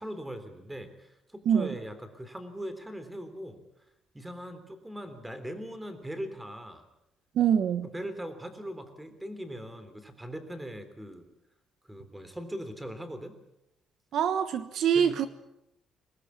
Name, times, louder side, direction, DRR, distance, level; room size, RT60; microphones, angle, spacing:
voice 1, 0.0-3.6 4.1-6.9 7.8-11.3 11.9-13.3 14.9-15.3, equal, 5° right, 10 dB, 3.3 m, -40 dB
voice 2, 7.4-7.9 14.1-15.3, right 8 dB, 65° right, 11 dB, 1.3 m, -24 dB
24.5 x 19.5 x 8.3 m, 0.85 s
cardioid pair, 135°, 0 cm